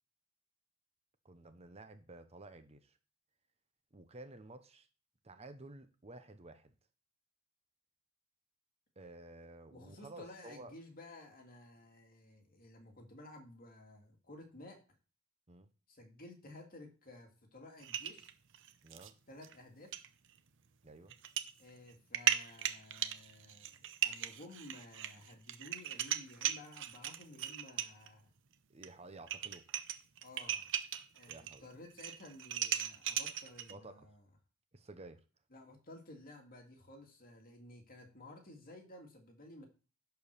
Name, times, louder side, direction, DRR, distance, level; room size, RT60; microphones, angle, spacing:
voice 1, 1.2-3.0 3.9-4.9 5.2-6.7 9.0-10.7 15.5-15.7 18.8-19.1 20.8-21.1 28.7-29.6 31.3-31.7 33.7-34.1 34.7-35.2, right 2 dB, 30° right, 0.8 m, -53 dB
voice 2, 9.7-14.8 15.9-18.3 19.3-19.9 21.6-28.3 30.2-30.7 31.1-34.2 35.5-39.7, left 1 dB, 40° left, 2.5 m, -54 dB
sound 1, 17.8-19.1 19.4-19.5 19.9-20.1 21.1-21.5 21.9-28.1 28.8-28.9 29.2-31.6 31.9-33.7, right 11 dB, 60° right, 0.8 m, -37 dB
11.0 x 4.6 x 6.7 m
head